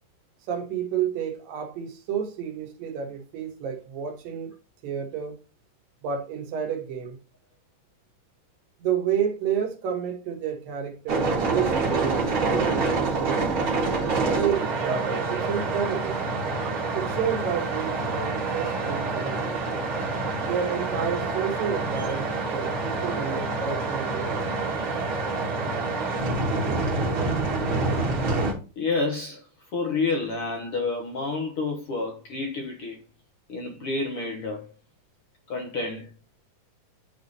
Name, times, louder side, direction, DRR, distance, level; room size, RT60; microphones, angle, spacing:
voice 1, 0.5-4.5 4.8-5.4 6.0-7.2 8.8-13.4 14.1-16.2 16.9-19.6 20.4-24.4, right 8 dB, 85° right, 3.0 m, -30 dB
sound 1, 11.1-28.5, right 3 dB, 45° right, 2.0 m, -27 dB
sound 2, 12.2-16.6, right 7 dB, 70° right, 0.9 m, -41 dB
voice 2, 28.8-29.4 29.7-33.0 33.5-34.7 35.5-36.1, left 3 dB, 60° left, 1.5 m, -29 dB
10.0 x 3.6 x 4.0 m
omnidirectional pair, 3.9 m